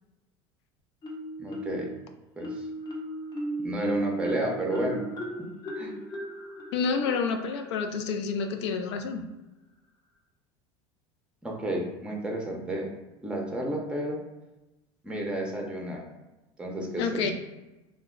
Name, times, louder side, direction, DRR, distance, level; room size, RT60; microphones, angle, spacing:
Marimba xylophone, 1.0-1.9 2.4-7.9, right 1 dB, 30° left, 0.7 m, -35 dB
voice 1, 1.4-1.9 2.4-2.7 3.6-5.1 5.8-6.0 11.4-12.9 13.2-14.2 15.0-16.0 16.6-17.3, right 1 dB, 5° right, 0 dB, 0.6 m, -31 dB
voice 2, 6.7-9.2 17.0-17.3, left 5 dB, 85° left, 6 dB, 0.4 m, -29 dB
2.1 x 2.1 x 3.6 m, 1.1 s
supercardioid pair, 100°, 14 cm